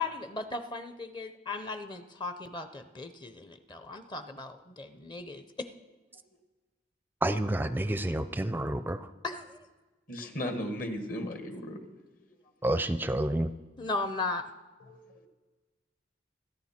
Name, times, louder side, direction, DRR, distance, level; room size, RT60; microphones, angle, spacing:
voice 1, 0.0-5.7 9.2-9.7 13.8-14.4, left 3 dB, 25° left, 9 dB, 0.7 m, -36 dB
voice 2, 7.2-9.1 12.6-13.5, right 1 dB, 10° right, 11 dB, 0.5 m, -29 dB
voice 3, 10.1-11.8 14.8-15.3, equal, 50° left, 5 dB, 1.7 m, -36 dB
27.5 x 10.0 x 4.3 m, 1.2 s
head